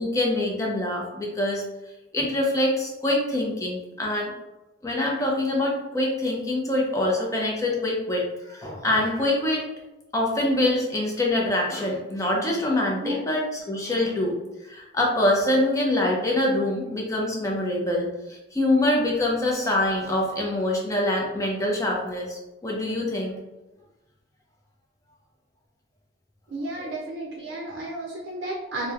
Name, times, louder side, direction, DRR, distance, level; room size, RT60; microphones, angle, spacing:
voice 1, 0.0-1.6 2.1-4.3 4.8-9.7 10.1-14.3 14.6-23.4 26.8-26.9, left 1 dB, 20° left, -2 dB, 0.5 m, -25 dB
voice 2, 26.5-28.9, right 1 dB, 80° right, -2 dB, 0.4 m, -32 dB
2.9 x 2.1 x 2.3 m, 1.0 s
head